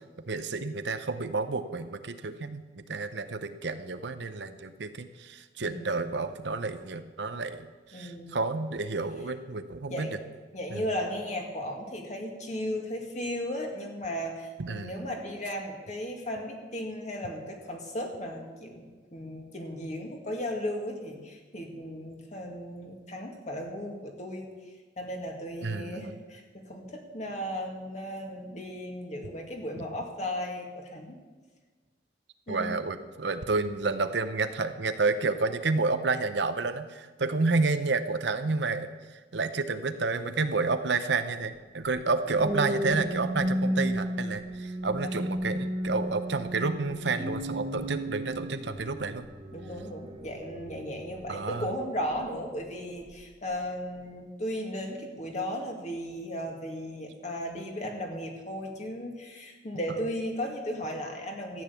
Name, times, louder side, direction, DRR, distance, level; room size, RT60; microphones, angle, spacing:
voice 1, 0.3-7.7 7.9-10.1 10.7-10.9 14.6-15.0 25.6-26.1 32.5-38.9 39.3-49.3 51.3-51.6, right 3 dB, 70° right, 10 dB, 0.7 m, -30 dB
voice 2, 5.6-6.0 7.9-8.4 9.9-10.2 10.5-18.8 19.1-24.5 25.0-31.2 32.5-32.8 49.5-61.6, equal, 40° left, 1 dB, 2.1 m, -36 dB
sound 1, 42.2-52.5 53.0-53.3, equal, 25° right, 1.4 m, -34 dB
13.5 x 8.9 x 7.1 m, 1.4 s
head